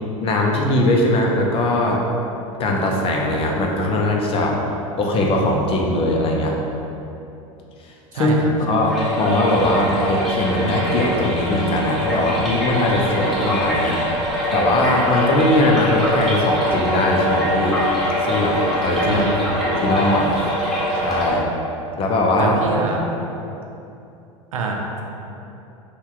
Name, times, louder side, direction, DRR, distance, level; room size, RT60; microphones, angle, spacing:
voice 1, 0.2-2.0 2.6-4.6 5.0-6.6 8.1-8.3 8.6-14.0 14.5-17.8 18.2-19.2 19.6-20.3 21.0-21.5 22.0-22.6, left 1 dB, 35° left, 0 dB, 0.5 m, -20 dB
sound 1, 8.9-21.3, left 1 dB, ahead, 0.9 m, -23 dB
voice 2, 19.0-19.5 22.4-23.0 24.5-25.0, right 3 dB, 85° right, 0 dB, 0.4 m, -26 dB
2.7 x 2.2 x 3.6 m, 2.8 s
hypercardioid pair, 90°, 17 cm